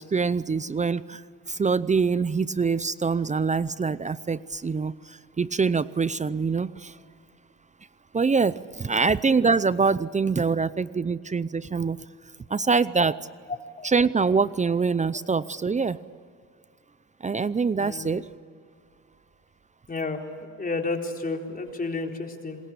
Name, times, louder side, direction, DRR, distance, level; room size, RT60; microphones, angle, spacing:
voice 1, 0.0-7.0 8.1-12.0 12.5-13.2 13.8-16.0 17.2-18.3, right 4 dB, 25° right, 17 dB, 0.6 m, -24 dB
voice 2, 17.8-18.1 19.9-22.6, left 3 dB, 30° left, 2 dB, 4.0 m, -31 dB
27.0 x 22.0 x 8.4 m, 2.2 s
cardioid pair, 90°, 30 cm